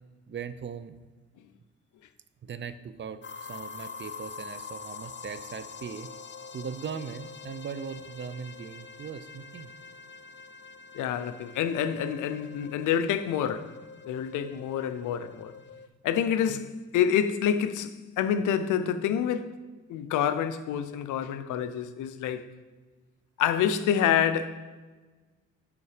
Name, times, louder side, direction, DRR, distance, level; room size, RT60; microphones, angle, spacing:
voice 1, 0.3-1.0 2.4-6.1 6.5-9.7 16.5-16.6, right 7 dB, 40° right, 0.5 m, -39 dB
sound 1, 3.2-15.9, left 5 dB, 40° left, 0.6 m, -45 dB
voice 2, 10.9-13.7 14.0-15.5 16.0-19.5 19.9-22.5 23.4-24.8, left 9 dB, 80° left, 0.6 m, -27 dB
7.1 x 5.5 x 5.0 m
cardioid pair, 90°, 30 cm